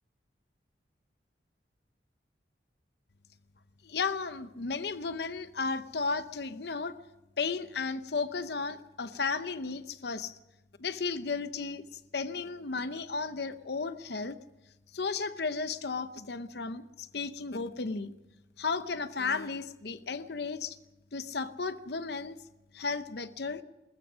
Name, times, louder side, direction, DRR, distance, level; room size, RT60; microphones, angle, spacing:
voice 1, 3.8-7.0 7.4-10.3 10.8-14.4 14.9-18.1 18.6-20.8 21.1-22.4 22.7-23.6, left 4 dB, 60° left, 12 dB, 0.7 m, -34 dB
21.0 x 20.0 x 6.2 m, 0.99 s
head